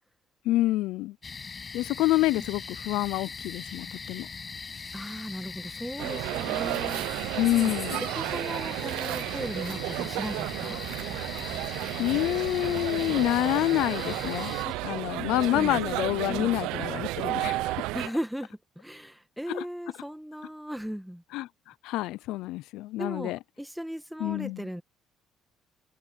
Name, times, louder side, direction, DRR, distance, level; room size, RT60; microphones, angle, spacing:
voice 1, 0.4-1.2 1.7-4.3 7.4-8.0 12.0-14.5 14.8-17.8 19.5-19.6 21.3-21.5 21.8-23.4 24.2-24.6, left 17 dB, 80° left, 0.5 m, -27 dB
sound 1, 1.2-14.7, left 5 dB, 35° left, 6.4 m, -40 dB
voice 2, 4.9-7.2 7.5-7.8 8.1-10.8 14.7-14.8 15.5-15.8 16.3-16.5 17.9-21.2 23.0-24.8, equal, ahead, 1.7 m, -37 dB
sound 2, 6.0-18.1, right 18 dB, 80° right, 0.8 m, -32 dB
supercardioid pair, 65°, 0 cm